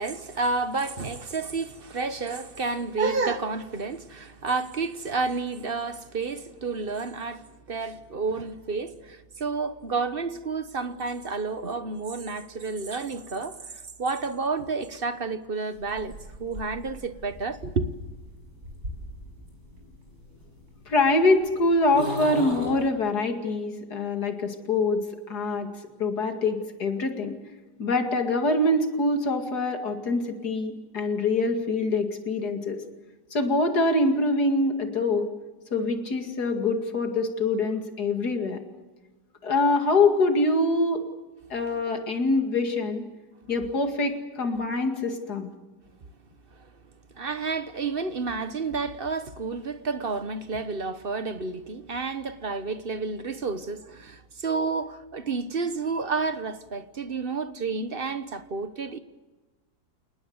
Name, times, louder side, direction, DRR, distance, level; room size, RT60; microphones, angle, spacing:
voice 1, 0.0-17.9 41.7-41.8 46.6-46.7 47.1-59.0, right 4 dB, 35° right, 1.2 m, -30 dB
sound 1, 15.8-22.9, left 1 dB, 60° right, 8.0 m, -39 dB
voice 2, 20.9-25.7 26.0-27.4 27.8-32.8 33.3-35.3 35.7-38.6 39.4-41.0 41.5-43.0 43.5-45.5, left 2 dB, 65° left, 2.8 m, -24 dB
29.0 x 19.5 x 8.0 m
omnidirectional pair, 1.8 m